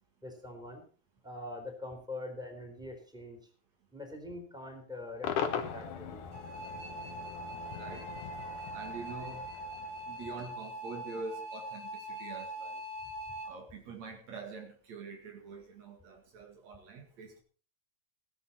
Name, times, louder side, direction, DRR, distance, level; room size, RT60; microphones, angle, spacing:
voice 1, 0.2-0.8 1.2-3.4 3.9-6.3, left 2 dB, ahead, 3.9 m, -43 dB
Cheering / Crowd / Fireworks, 5.2-10.5, left 8 dB, 90° left, 2.9 m, -40 dB
sound 1, 6.3-13.5, right 1 dB, 85° right, 4.7 m, -42 dB
voice 2, 7.7-8.1 8.7-9.5 10.1-12.8 13.4-17.4, right 4 dB, 65° right, 3.3 m, -45 dB
17.0 x 11.5 x 4.3 m
omnidirectional pair, 3.5 m